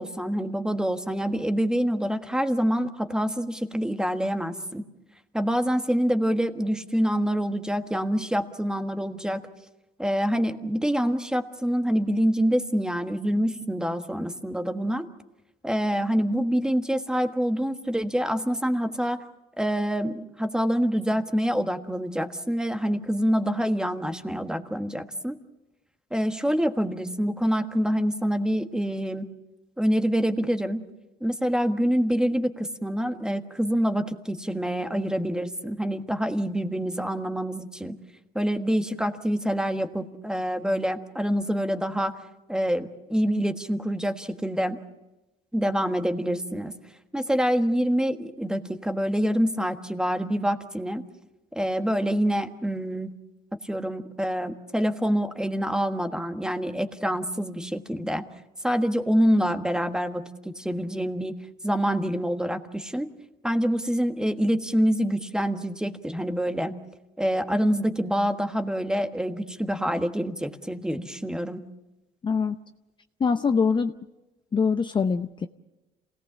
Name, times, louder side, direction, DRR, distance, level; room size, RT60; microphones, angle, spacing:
voice 1, 0.0-4.8 5.3-9.4 10.0-15.1 15.6-19.2 19.6-25.4 26.1-29.3 29.8-30.8 31.2-38.0 38.3-42.1 42.5-44.8 45.5-46.7 47.1-51.0 51.5-53.1 53.6-58.2 58.6-61.4 61.6-63.1 63.4-66.7 67.2-71.6, equal, 5° right, 7 dB, 1.5 m, -26 dB
voice 2, 72.2-72.5 73.2-73.9 74.5-75.5, left 5 dB, 30° left, 8 dB, 0.7 m, -23 dB
27.5 x 18.0 x 7.2 m, 1.0 s
cardioid pair, 110°, 17 cm